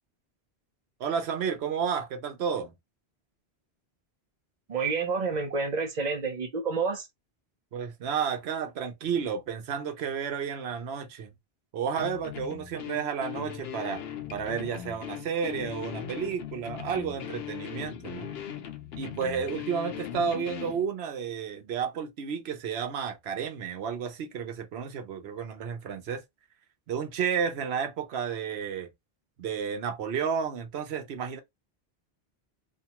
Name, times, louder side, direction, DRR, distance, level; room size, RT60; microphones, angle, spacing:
voice 1, 1.0-2.7 7.7-11.3 11.7-14.0 14.3-18.3 19.0-26.2 26.9-28.9 29.4-31.4, right 7 dB, 80° right, 0.9 m, -32 dB
voice 2, 4.7-7.1, right 4 dB, 50° right, 0.7 m, -29 dB
sound 1, 12.0-20.8, left 9 dB, 75° left, 0.8 m, -39 dB
2.6 x 2.3 x 2.8 m
omnidirectional pair, 1.1 m